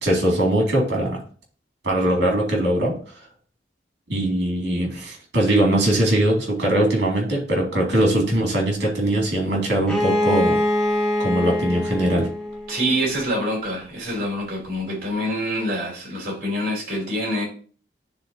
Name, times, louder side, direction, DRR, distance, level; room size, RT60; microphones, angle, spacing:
voice 1, 0.0-1.2 1.8-3.0 4.1-10.6 11.2-12.3, right 1 dB, 65° right, 2.4 m, -21 dB
Bowed string instrument, 9.8-13.5, left 1 dB, 5° left, 0.9 m, -24 dB
voice 2, 12.7-17.4, equal, 50° right, 3.2 m, -26 dB
9.7 x 3.7 x 2.8 m
head